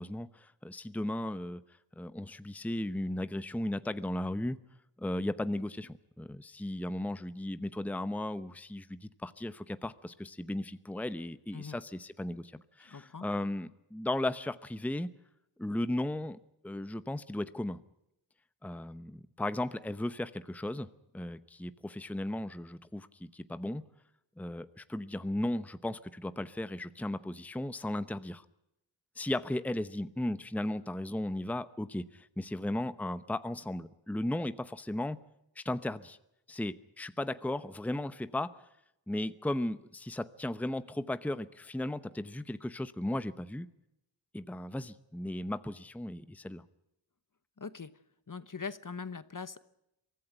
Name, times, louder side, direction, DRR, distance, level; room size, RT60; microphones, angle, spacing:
voice 1, 0.0-1.6 2.0-4.6 5.0-15.1 15.6-16.4 16.6-17.8 18.6-20.9 21.1-23.8 24.4-28.4 29.2-35.2 35.6-36.2 36.5-38.5 39.1-43.7 44.3-46.6, left 1 dB, 5° left, 13 dB, 0.8 m, -36 dB
voice 2, 12.8-13.3 47.6-47.9 48.3-49.6, left 5 dB, 40° left, 14 dB, 1.0 m, -41 dB
23.5 x 15.0 x 8.9 m, 0.86 s
wide cardioid pair, 60°, 47 cm